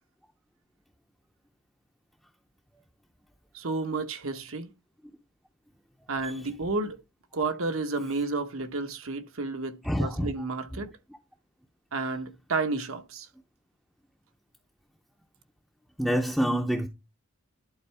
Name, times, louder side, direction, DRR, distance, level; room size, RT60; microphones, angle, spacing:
voice 1, 3.5-4.7 6.1-7.0 7.3-10.9 11.9-13.3, right 3 dB, 70° right, 1.0 m, -31 dB
voice 2, 9.8-10.3 16.0-16.9, equal, ahead, 0.6 m, -26 dB
11.5 x 4.4 x 3.4 m
head